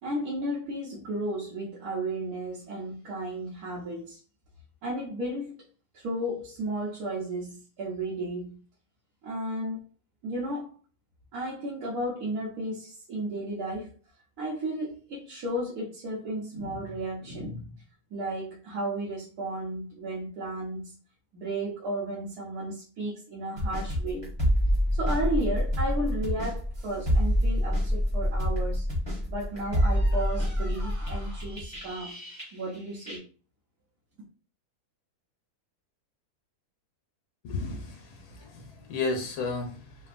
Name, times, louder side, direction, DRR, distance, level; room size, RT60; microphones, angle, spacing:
voice 1, 0.0-4.2 4.8-5.5 5.9-8.6 9.2-9.8 10.2-10.8 11.3-13.9 14.4-17.7 18.1-21.0 21.3-24.3 24.9-28.9 29.3-32.2 32.5-33.2, right 1 dB, 75° right, -4 dB, 1.3 m, -33 dB
sound 1, 23.6-32.8 33.1-33.2, equal, 20° right, 1.0 m, -27 dB
voice 2, 37.4-40.0, left 3 dB, 80° left, 3 dB, 1.3 m, -33 dB
3.3 x 2.3 x 2.5 m, 0.38 s
omnidirectional pair, 1.6 m